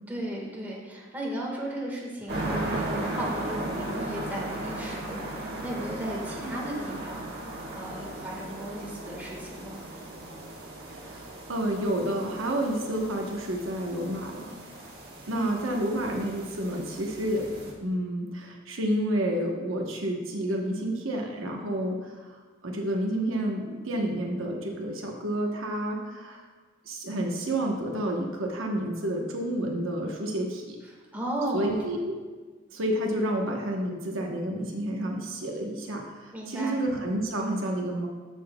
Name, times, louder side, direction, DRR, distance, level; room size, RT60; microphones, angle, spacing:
voice 1, 0.1-7.3 7.7-9.8 15.3-15.5 31.1-31.8 36.3-36.8, right 1 dB, 10° right, -3 dB, 1.5 m, -35 dB
sound 1, 2.3-17.7, right 1 dB, 50° right, 1.4 m, -37 dB
voice 2, 10.9-14.5 15.3-17.5 17.8-22.4 22.6-26.5 26.8-30.8 31.5-32.1 32.7-38.1, right 1 dB, 65° right, 0 dB, 1.0 m, -30 dB
13.5 x 6.2 x 2.2 m, 1.4 s
head